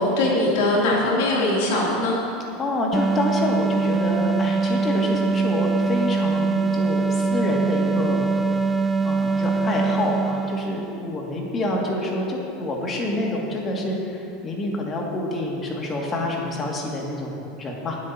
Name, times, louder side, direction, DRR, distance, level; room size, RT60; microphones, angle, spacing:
voice 1, 0.0-2.2, left 1 dB, 65° left, -4 dB, 3.0 m, -21 dB
voice 2, 2.6-8.3 9.0-18.0, left 1 dB, 30° left, -1 dB, 2.3 m, -27 dB
sound 1, 2.9-11.1, right 4 dB, 20° right, 0.5 m, -23 dB
21.0 x 8.3 x 2.9 m, 2.6 s
hypercardioid pair, 80°, 0 cm